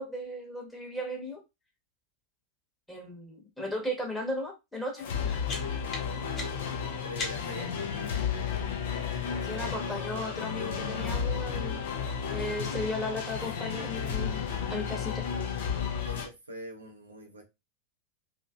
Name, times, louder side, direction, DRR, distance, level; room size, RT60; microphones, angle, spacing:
voice 1, 0.0-1.4 2.9-5.4 9.4-11.8 12.3-14.4 14.7-15.3, left 1 dB, 5° left, 1.1 m, -36 dB
sound 1, 5.0-16.3, left 7 dB, 60° left, 0.5 m, -33 dB
sound 2, 5.0-7.7, left 2 dB, 25° left, 1.1 m, -41 dB
voice 2, 7.0-7.8 16.0-17.4, equal, 80° right, 0.7 m, -43 dB
sound 3, 9.1-13.2, right 2 dB, 65° right, 0.3 m, -48 dB
2.8 x 2.5 x 2.3 m
figure-of-eight pair, 85°, 0 cm